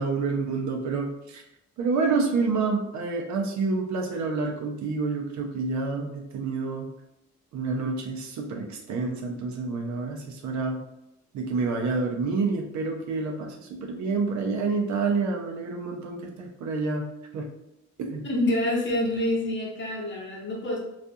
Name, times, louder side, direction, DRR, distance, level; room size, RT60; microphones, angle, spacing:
voice 1, 0.0-1.4 1.8-6.9 7.5-10.8 11.3-17.0 17.3-17.5 18.0-18.2, right 4 dB, 65° right, 2 dB, 0.6 m, -28 dB
voice 2, 18.2-20.8, left 1 dB, 40° left, -3 dB, 1.0 m, -27 dB
2.5 x 2.3 x 2.6 m, 0.87 s
cardioid pair, 90°, 30 cm